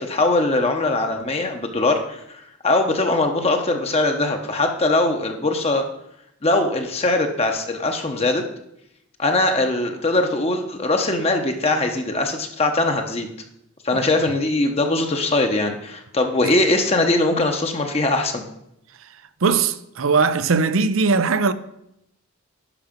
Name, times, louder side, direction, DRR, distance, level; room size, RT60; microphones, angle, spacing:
voice 1, 0.0-5.9 6.4-8.4 9.2-13.3 13.8-18.5, left 2 dB, 30° left, 0.8 m, -21 dB
voice 2, 19.4-21.5, right 4 dB, 70° right, 0.6 m, -20 dB
11.0 x 5.9 x 5.1 m
head